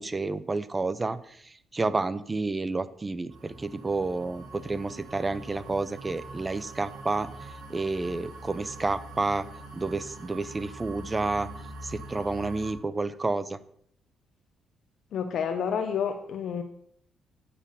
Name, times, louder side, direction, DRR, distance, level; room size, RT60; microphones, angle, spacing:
voice 1, 0.0-7.3 7.7-9.5 9.7-11.5 11.8-13.6, right 3 dB, 25° right, 15 dB, 0.6 m, -30 dB
sound 1, 3.3-12.7, right 2 dB, 90° right, 1.6 m, -44 dB
voice 2, 15.1-16.6, left 7 dB, 65° left, 6 dB, 0.8 m, -29 dB
8.7 x 6.9 x 5.6 m, 0.66 s
cardioid pair, 90°, 0 cm